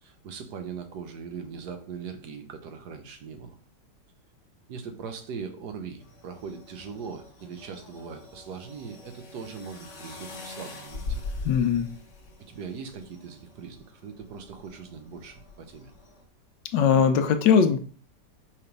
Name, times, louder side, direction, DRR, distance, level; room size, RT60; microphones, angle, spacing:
voice 1, 0.0-3.5 4.7-11.2 12.4-15.9, right 6 dB, 70° right, 6 dB, 1.5 m, -40 dB
sound 1, 6.0-16.2, left 3 dB, 45° left, 1.3 m, -42 dB
voice 2, 11.4-11.9 16.7-17.8, left 7 dB, 85° left, 8 dB, 1.4 m, -20 dB
5.8 x 3.2 x 5.2 m, 0.41 s
omnidirectional pair, 1.9 m